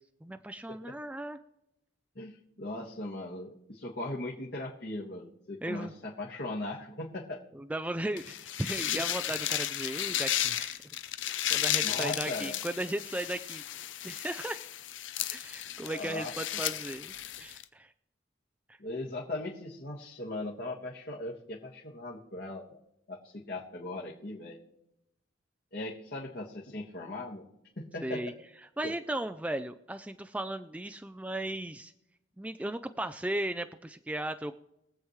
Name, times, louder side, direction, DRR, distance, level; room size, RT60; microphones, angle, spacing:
voice 1, 0.2-1.4 5.6-5.9 7.5-10.8 11.5-13.6 14.0-14.6 15.3-17.9 28.0-28.3 28.8-31.9 32.4-34.6, right 1 dB, 5° right, 9 dB, 0.3 m, -36 dB
voice 2, 2.1-7.4 8.9-9.1 11.8-12.6 15.8-16.8 18.8-22.8 23.1-24.6 25.7-27.5 27.8-28.3 28.8-28.9, left 2 dB, 55° left, -3 dB, 1.6 m, -39 dB
sound 1, 8.2-17.6, left 12 dB, 85° left, 0.6 m, -34 dB
22.5 x 8.0 x 3.2 m, 0.85 s
head